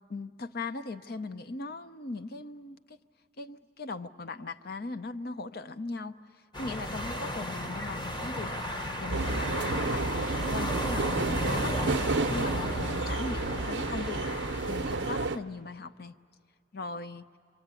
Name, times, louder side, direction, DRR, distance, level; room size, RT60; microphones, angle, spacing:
voice 1, 0.1-3.0 3.4-6.1 6.6-8.6 9.0-11.8 12.2-14.2 14.7-16.1 16.7-17.2, left 3 dB, 50° left, 12 dB, 0.6 m, -39 dB
sound 1, 6.5-15.4, equal, 25° left, 0.9 m, -34 dB
sound 2, 9.1-15.4, right 3 dB, 65° right, 0.6 m, -31 dB
26.5 x 24.0 x 9.0 m, 2.2 s
head